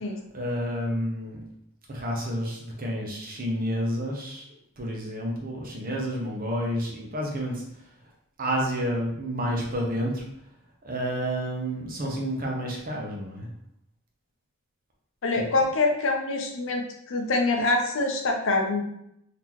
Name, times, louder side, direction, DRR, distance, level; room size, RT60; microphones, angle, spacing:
voice 1, 0.3-1.4 1.9-4.4 4.8-7.6 8.4-10.2 10.8-13.5 15.3-15.5, equal, 40° right, -1 dB, 0.8 m, -30 dB
voice 2, 15.2-18.8, left 2 dB, 60° left, 2 dB, 0.6 m, -25 dB
3.8 x 2.8 x 3.0 m, 0.76 s
head